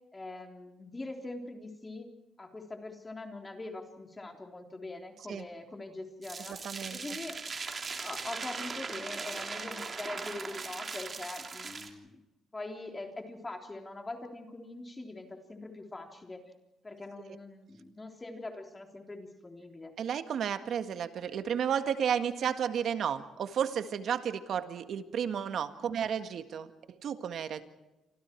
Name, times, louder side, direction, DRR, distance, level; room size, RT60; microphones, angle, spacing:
voice 1, 0.1-2.1 2.4-6.6 6.9-7.4 8.0-12.2 12.5-16.5 16.8-19.9 25.8-25.9, left 2 dB, 20° left, 3 dB, 3.6 m, -43 dB
sound 1, 6.2-11.9, right 4 dB, 35° right, 3.2 m, -39 dB
voice 2, 6.6-7.0 20.0-27.6, right 8 dB, 65° right, 9 dB, 1.7 m, -32 dB
28.5 x 26.0 x 4.7 m, 0.99 s
cardioid pair, 90°, 0 cm